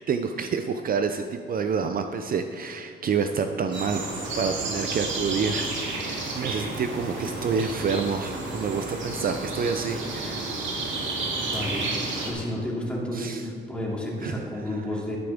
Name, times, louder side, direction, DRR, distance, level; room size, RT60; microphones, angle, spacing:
voice 1, 0.1-10.8 13.1-13.4 14.2-14.4, right 5 dB, 45° right, 7 dB, 0.5 m, -28 dB
sound 1, 3.7-12.3, right 2 dB, 70° right, 2.2 m, -31 dB
voice 2, 11.5-15.2, left 1 dB, 5° left, -4 dB, 2.7 m, -31 dB
11.5 x 9.7 x 3.6 m, 2.2 s
cardioid pair, 90°, 20 cm